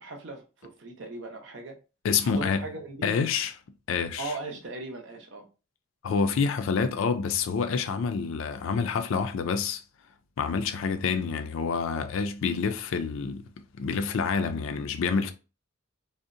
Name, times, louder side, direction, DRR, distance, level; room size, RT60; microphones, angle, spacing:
voice 1, 0.0-1.8 2.2-3.1 4.2-5.5, right 2 dB, 60° right, 0.6 m, -38 dB
voice 2, 2.0-2.6 3.0-3.5 3.9-4.3 6.0-9.8 10.4-15.3, left 5 dB, 75° left, 0.3 m, -27 dB
2.7 x 2.0 x 2.5 m
head